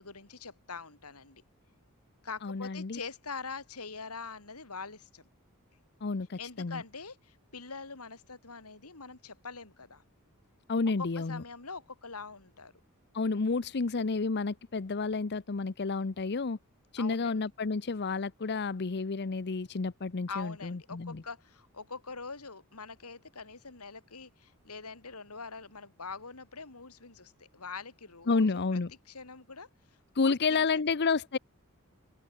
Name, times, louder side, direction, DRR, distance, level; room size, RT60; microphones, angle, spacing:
voice 1, 0.0-1.4 2.2-5.2 6.4-10.0 11.0-12.7 17.0-17.4 20.3-28.8 29.1-29.7 30.2-30.7, left 4 dB, 90° left, 3.3 m, -44 dB
voice 2, 2.4-3.0 6.0-6.8 10.7-11.4 13.1-16.6 16.9-21.2 28.3-28.9 30.1-31.4, left 4 dB, 50° left, 0.7 m, -30 dB
open air
head